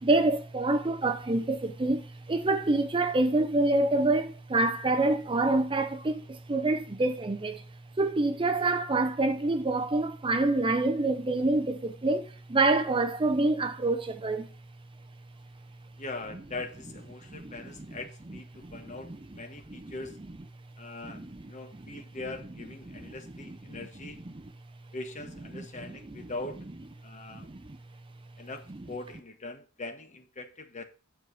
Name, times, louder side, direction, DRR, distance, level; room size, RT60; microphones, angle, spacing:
voice 1, 0.0-7.6 8.0-14.5 17.3-17.9 18.6-18.8 19.8-19.9 21.1-21.3 21.9-22.0 22.9-23.1 23.7-23.8 25.5-26.0 27.3-27.8, right 2 dB, 25° right, 0.6 m, -27 dB
voice 2, 16.0-20.2 20.8-24.2 24.9-26.7 27.0-27.5 28.4-30.8, left 2 dB, 35° left, 1.2 m, -41 dB
9.5 x 4.8 x 6.1 m
head